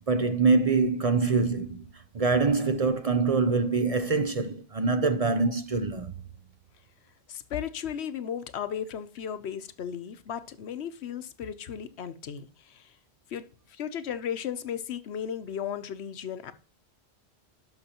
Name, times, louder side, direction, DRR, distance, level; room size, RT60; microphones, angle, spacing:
voice 1, 0.1-1.8 2.1-6.1, right 4 dB, 45° right, 0.6 m, -24 dB
voice 2, 7.3-12.9 13.3-16.5, left 8 dB, 80° left, 1.0 m, -35 dB
11.5 x 6.1 x 2.9 m
omnidirectional pair, 1.1 m